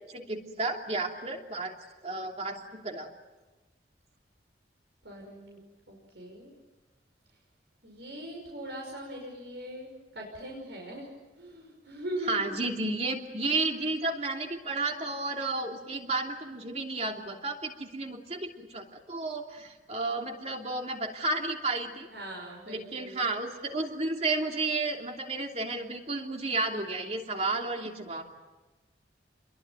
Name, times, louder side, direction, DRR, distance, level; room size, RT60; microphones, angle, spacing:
voice 1, 0.1-1.7 2.0-3.1 12.3-22.1 22.7-28.2, right 3 dB, 35° right, 2 dB, 2.9 m, -32 dB
voice 2, 5.0-5.6 5.9-6.5 7.8-11.1 11.4-12.6 22.1-23.2, equal, 75° right, -1 dB, 6.0 m, -40 dB
29.0 x 22.5 x 9.2 m, 1.2 s
head